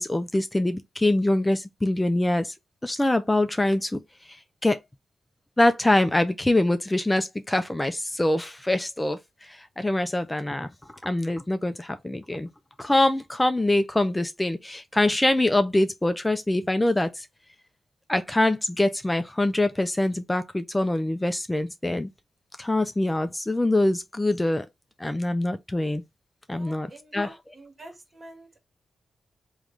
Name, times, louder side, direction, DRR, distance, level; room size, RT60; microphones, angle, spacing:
voice 1, 0.0-2.5 2.8-4.0 4.2-4.8 5.6-12.5 12.8-17.3 18.1-22.1 22.6-24.7 25.0-26.0 26.5-26.9 27.1-27.3, left 1 dB, 15° left, 0.5 m, -24 dB
voice 2, 26.5-28.6, right 2 dB, 45° right, 1.9 m, -47 dB
3.6 x 3.1 x 3.2 m
cardioid pair, 60°, 0 cm